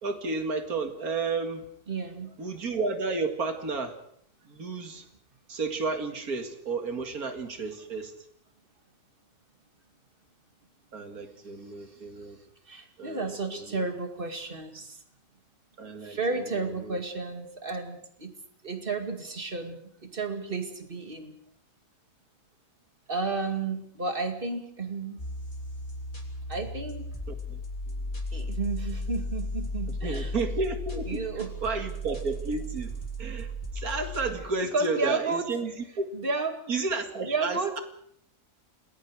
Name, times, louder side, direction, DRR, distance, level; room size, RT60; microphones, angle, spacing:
voice 1, 0.0-1.6 2.4-4.0 4.5-5.0 5.5-8.1 10.9-12.4 13.0-13.9 15.8-17.0 27.5-27.6 28.3-28.5 30.0-36.1 36.7-37.8, right 4 dB, 65° right, 6 dB, 2.6 m, -32 dB
voice 2, 1.9-2.3 12.7-15.0 16.0-18.3 18.6-21.4 23.1-25.2 26.5-27.1 28.3-30.3 31.1-31.5 34.7-35.5 36.1-36.6 37.2-37.8, right 3 dB, 35° right, 6 dB, 2.4 m, -32 dB
sound 1, 25.2-34.3, left 1 dB, 30° left, 3.3 m, -35 dB
28.5 x 20.0 x 4.8 m, 0.66 s
omnidirectional pair, 1.7 m